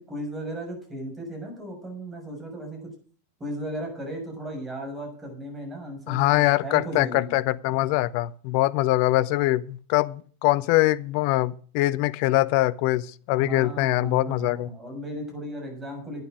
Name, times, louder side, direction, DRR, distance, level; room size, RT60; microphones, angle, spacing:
voice 1, 0.0-2.9 3.4-7.3 13.4-16.2, right 1 dB, 15° right, 2 dB, 6.5 m, -36 dB
voice 2, 6.1-14.7, left 17 dB, 45° left, 18 dB, 0.6 m, -23 dB
12.0 x 9.3 x 6.3 m, 0.42 s
figure-of-eight pair, 90°, 0 cm